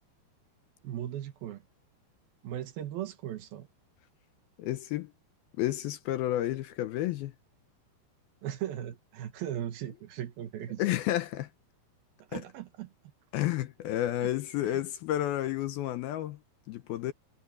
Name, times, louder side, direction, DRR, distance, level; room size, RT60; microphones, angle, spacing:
voice 1, 0.8-1.6 2.4-3.7 8.4-10.8 12.3-12.9 14.2-14.3 14.6-14.8, right 11 dB, 70° right, 2.7 m, -38 dB
voice 2, 4.6-5.1 5.6-7.3 10.8-11.5 12.3-12.4 13.3-16.4 16.7-17.1, left 13 dB, 75° left, 2.4 m, -31 dB
omnidirectional pair, 4.9 m